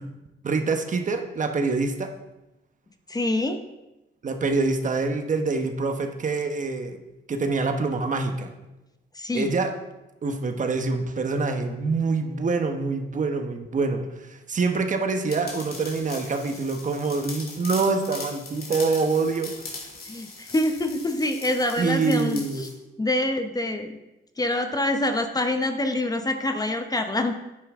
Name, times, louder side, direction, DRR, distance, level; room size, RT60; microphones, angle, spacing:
voice 1, 0.4-2.1 4.2-7.0 7.3-8.5 9.3-9.7 10.2-19.9 21.8-22.7, right 4 dB, 40° right, 6 dB, 1.1 m, -25 dB
voice 2, 3.1-3.6 9.1-9.5 20.1-22.7 23.0-24.0 24.4-27.4, left 1 dB, 20° left, 6 dB, 0.9 m, -26 dB
sound 1, 15.3-22.7, left 3 dB, 50° left, 2.7 m, -40 dB
9.9 x 9.0 x 3.7 m, 0.98 s
cardioid pair, 90°, 20 cm